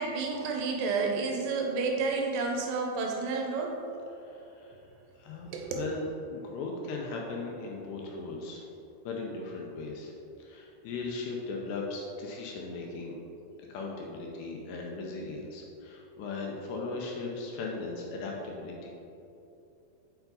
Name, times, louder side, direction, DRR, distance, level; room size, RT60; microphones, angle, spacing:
voice 1, 0.0-3.8 5.5-5.8, right 4 dB, 80° right, 1 dB, 2.8 m, -30 dB
voice 2, 4.1-4.8 5.2-5.5 5.7-8.7 9.1-10.1 10.4-13.2 13.7-18.9, left 3 dB, 80° left, -1 dB, 2.6 m, -38 dB
7.7 x 4.7 x 3.9 m, 2.8 s
omnidirectional pair, 5.2 m